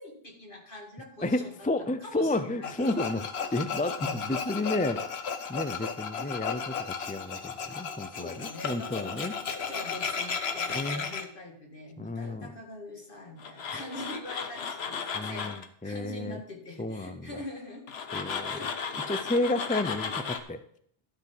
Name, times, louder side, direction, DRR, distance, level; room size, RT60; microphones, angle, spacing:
voice 1, 0.0-2.7 4.0-4.3 8.1-17.8 18.5-18.7, left 1 dB, 55° left, 0 dB, 2.4 m, -43 dB
voice 2, 1.2-5.1 5.5-9.3 10.7-11.0 12.0-12.5 15.1-16.4 16.8-17.3 18.1-18.6 19.1-20.6, left 2 dB, 15° left, 10 dB, 0.3 m, -31 dB
Tools, 2.6-11.2 13.4-15.7 17.9-20.4, left 6 dB, 80° left, 1.2 m, -34 dB
12.0 x 5.9 x 5.9 m, 0.64 s
omnidirectional pair, 1.0 m